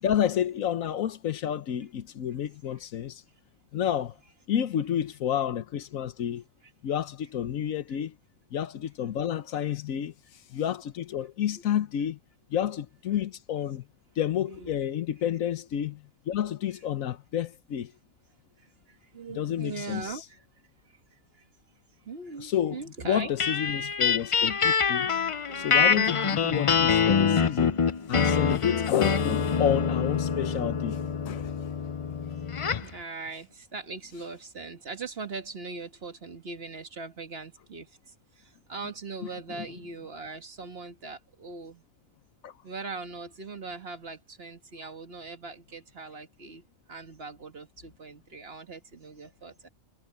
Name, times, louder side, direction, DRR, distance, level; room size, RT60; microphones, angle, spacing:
voice 1, 0.0-3.2 3.7-4.1 4.5-6.4 6.8-8.1 8.5-10.1 10.5-12.2 12.5-13.8 14.2-17.9 19.4-20.1 22.4-22.8 23.0-25.1 25.5-31.0 31.2-31.5 39.6-39.7 42.4-42.5, left 10 dB, 80° left, 1.3 m, -30 dB
voice 2, 14.4-14.9 18.6-20.4 20.9-21.4 22.1-23.3 25.5-26.0 32.8-41.8 42.6-46.6 46.9-49.7, right 4 dB, 50° right, 1.7 m, -41 dB
sound 1, 23.4-32.9, left 6 dB, 50° left, 0.4 m, -25 dB
omnidirectional pair, 1.4 m